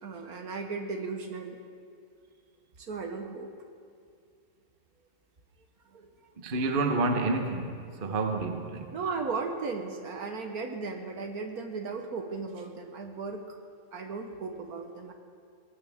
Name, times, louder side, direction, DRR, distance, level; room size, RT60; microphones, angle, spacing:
voice 1, 0.0-1.6 2.8-3.5 5.9-6.1 8.9-13.6 13.9-15.1, right 4 dB, 55° right, 4 dB, 1.5 m, -36 dB
voice 2, 6.4-8.9, right 3 dB, 35° right, 4 dB, 1.0 m, -29 dB
21.5 x 17.0 x 3.6 m, 2.2 s
omnidirectional pair, 2.0 m